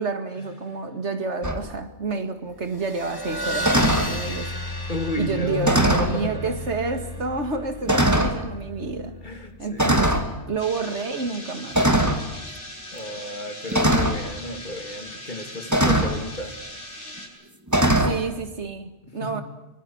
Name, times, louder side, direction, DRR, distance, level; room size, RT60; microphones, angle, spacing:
voice 1, 0.0-4.5 5.2-9.2 9.6-10.1 10.5-11.8 18.0-19.4, right 4 dB, 75° right, 2.3 m, -29 dB
sound 1, 1.4-1.6 3.6-4.1 5.6-6.2 7.0-7.1 7.9-8.4 9.8-10.3 11.7-12.2 13.7-14.2 15.7-16.2 17.7-18.2, right 1 dB, 15° right, 2.4 m, -20 dB
sound 2, 2.6-9.7, equal, 20° left, 2.3 m, -34 dB
voice 2, 4.9-6.6 9.2-10.4 12.9-16.6 19.0-19.4, left 1 dB, 45° left, 2.8 m, -32 dB
sound 3, 10.6-17.3, left 1 dB, 90° left, 6.4 m, -39 dB
24.5 x 24.0 x 7.9 m
omnidirectional pair, 1.2 m